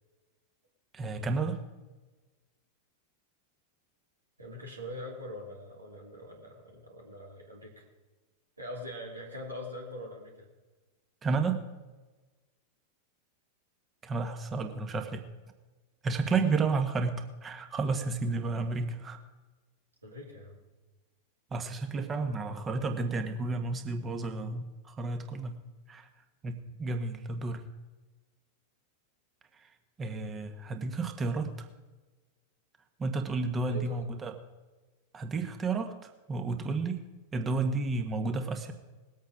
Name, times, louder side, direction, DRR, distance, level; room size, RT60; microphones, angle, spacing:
voice 1, 0.9-1.6 11.2-11.6 14.0-15.2 16.0-19.2 21.5-25.6 25.9-26.1 26.4-27.6 30.0-31.7 33.0-34.3 35.1-37.0 37.3-38.7, right 3 dB, 20° right, 6 dB, 1.5 m, -31 dB
voice 2, 4.4-7.9 8.6-10.5 16.4-16.6 20.0-20.6 33.6-34.0, left 1 dB, 80° right, -2 dB, 2.9 m, -43 dB
20.0 x 8.2 x 5.0 m, 1.2 s
figure-of-eight pair, 90°, 0 cm